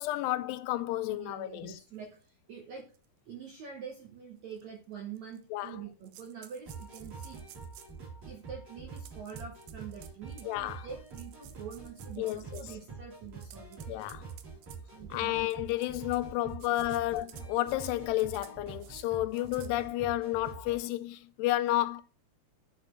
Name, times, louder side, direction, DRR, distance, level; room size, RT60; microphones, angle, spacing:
voice 1, 0.0-1.8 5.5-5.8 10.4-10.9 12.2-12.6 13.9-14.3 15.1-22.0, left 16 dB, 85° left, 2.7 m, -31 dB
voice 2, 1.1-2.9 3.3-7.4 8.2-13.8 14.9-15.4 16.9-17.0, right 7 dB, 70° right, 1.7 m, -45 dB
sound 1, 2.2-2.3 2.9-3.1 3.5-3.6 4.5-4.6 5.2-5.7 6.0-8.0 9.0-10.5 11.1-12.9 13.3-14.8 15.4-16.2 16.5-17.9 18.2-18.5 18.8-19.0 19.3-19.7, right 12 dB, 85° right, 1.9 m, -54 dB
sound 2, 6.7-20.9, right 5 dB, 45° right, 4.4 m, -46 dB
9.3 x 5.7 x 3.1 m
omnidirectional pair, 4.8 m